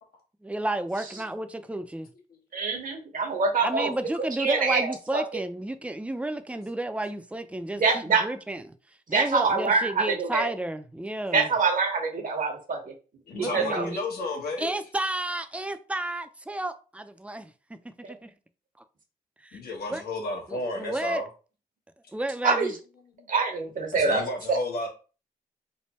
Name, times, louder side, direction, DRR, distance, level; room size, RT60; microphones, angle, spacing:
voice 1, 0.4-2.1 3.6-8.7 9.1-11.5 13.3-14.0 14.6-18.3 19.4-20.0 20.5-21.2 22.1-22.7, right 1 dB, 10° right, 0.5 m, -32 dB
voice 2, 2.5-3.9 4.2-4.9 5.1-5.2 7.8-8.2 9.1-10.5 11.3-12.9 13.3-13.9 18.0-18.1 22.4-22.7 23.3-24.2, right 4 dB, 60° right, 1.1 m, -25 dB
voice 3, 13.3-14.7 19.5-21.3 23.2-23.3 23.9-24.9, left 2 dB, 80° left, 1.2 m, -32 dB
3.3 x 2.2 x 4.1 m
cardioid pair, 65°, 16 cm